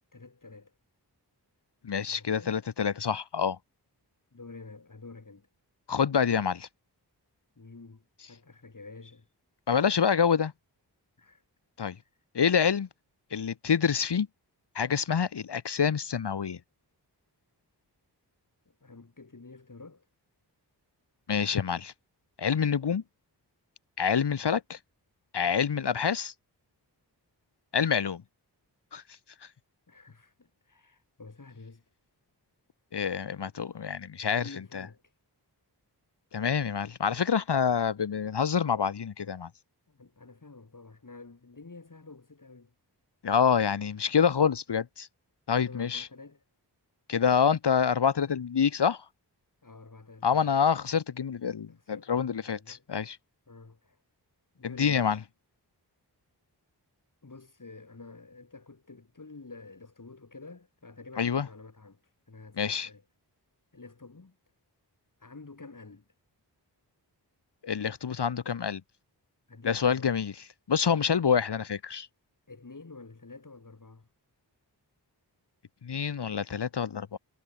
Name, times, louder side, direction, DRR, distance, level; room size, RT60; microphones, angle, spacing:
voice 1, 0.1-0.7 2.0-2.5 4.3-5.5 7.6-9.3 11.2-11.4 12.0-12.1 18.7-20.1 29.9-31.8 34.3-35.0 39.9-42.7 45.6-46.4 49.6-50.5 51.7-52.9 53.5-54.0 54.5-55.2 57.2-62.0 62.3-63.1 63.7-64.4 65.2-66.0 69.5-70.1 72.5-74.1, left 3 dB, 50° left, 7.2 m, -49 dB
voice 2, 1.8-3.6 5.9-6.7 9.7-10.5 11.8-11.9 12.3-12.9 13.3-14.3 14.7-16.6 21.3-21.9 22.4-23.0 24.0-24.8 25.3-26.3 27.7-28.2 28.9-29.0 32.9-34.4 34.7-34.8 36.3-39.5 43.2-45.1 45.5-46.1 47.1-49.0 50.2-53.2 54.6-55.2 61.2-61.5 62.6-62.9 67.6-68.8 69.6-70.3 70.7-72.1 75.8-77.2, left 7 dB, 75° left, 1.3 m, -27 dB
wide cardioid pair, 75°, 41 cm